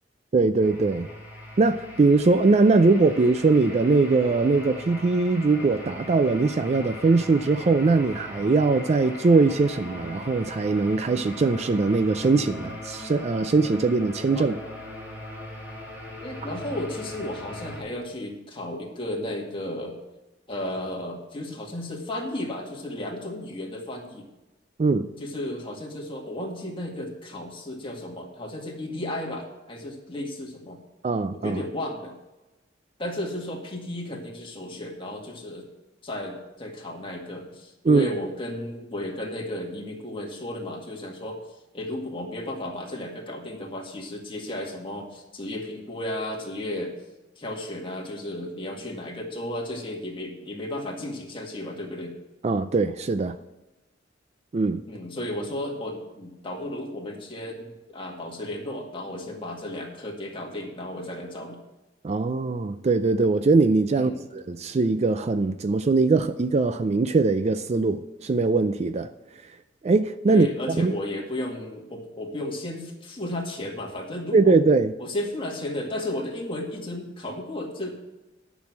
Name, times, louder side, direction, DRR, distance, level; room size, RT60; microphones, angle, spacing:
voice 1, 0.3-1.1 1.6-14.6 24.8-25.1 31.0-31.6 37.9-38.1 52.4-53.4 54.5-54.8 62.0-69.1 69.8-70.5 70.8-70.9 74.3-74.9, right 3 dB, 35° right, 11 dB, 0.4 m, -21 dB
sound 1, 0.6-17.8, left 1 dB, 10° right, 2.2 m, -40 dB
voice 2, 16.2-20.0 20.5-24.3 25.2-30.8 31.3-32.1 33.0-35.7 36.0-41.4 41.7-46.9 47.4-52.2 54.9-61.6 63.9-64.2 70.3-74.6 75.0-77.9, left 1 dB, 30° left, 0 dB, 2.0 m, -34 dB
10.5 x 6.3 x 7.4 m, 1.1 s
head